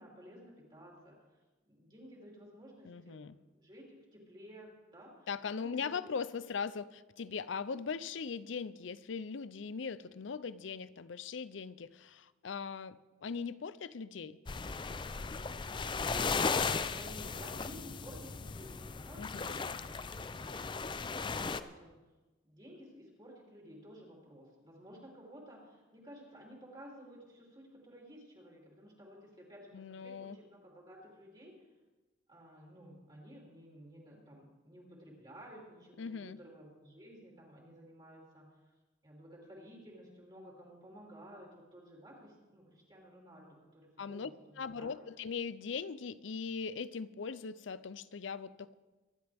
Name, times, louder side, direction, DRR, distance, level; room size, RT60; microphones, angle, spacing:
voice 1, 0.0-1.4 1.6-5.3 5.5-5.9 16.3-22.0 22.4-31.5 32.3-38.5 39.0-44.9, equal, 25° right, -3 dB, 3.0 m, -54 dB
voice 2, 2.8-3.4 5.3-14.4 19.1-19.8 29.7-30.4 36.0-36.4 44.0-44.3 44.6-48.7, left 5 dB, 70° left, 16 dB, 0.5 m, -40 dB
sound 1, 14.5-21.6, left 4 dB, 25° left, 0.4 m, -36 dB
24.5 x 11.0 x 3.5 m, 1.2 s
head